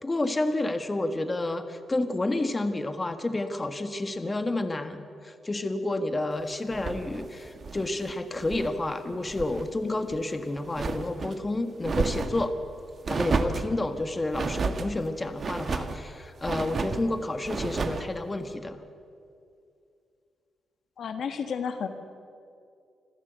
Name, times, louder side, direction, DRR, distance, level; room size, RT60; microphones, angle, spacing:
voice 1, 0.0-12.5 13.1-18.8, left 2 dB, 25° left, 8 dB, 1.5 m, -30 dB
sound 1, 6.7-8.8 9.1-9.7 10.0-11.4 11.8-12.5 13.0-13.7 14.3-14.9 15.4-16.0 16.4-17.0 17.4-18.1, right 4 dB, 45° right, 1.6 m, -31 dB
voice 2, 21.0-21.9, left 6 dB, 70° left, 8 dB, 1.5 m, -31 dB
26.0 x 14.5 x 8.1 m, 2.4 s
cardioid pair, 90°, 0 cm